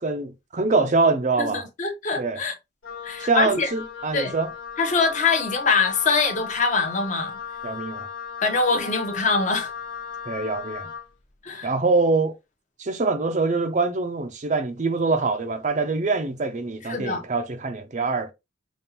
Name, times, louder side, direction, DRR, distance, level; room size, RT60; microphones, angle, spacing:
voice 1, 0.0-1.7 2.2-2.4 3.2-4.5 7.6-8.1 10.3-10.9 11.6-12.4 12.8-18.3, right 3 dB, 35° right, 0.5 m, -24 dB
voice 2, 1.4-2.6 3.0-3.7 4.1-4.3 4.8-7.4 8.4-9.7 11.4-11.7 16.9-17.2, left 4 dB, 35° left, 0.8 m, -23 dB
Wind instrument woodwind instrument, 2.8-11.1, left 7 dB, 80° left, 1.0 m, -36 dB
5.2 x 2.4 x 2.8 m
head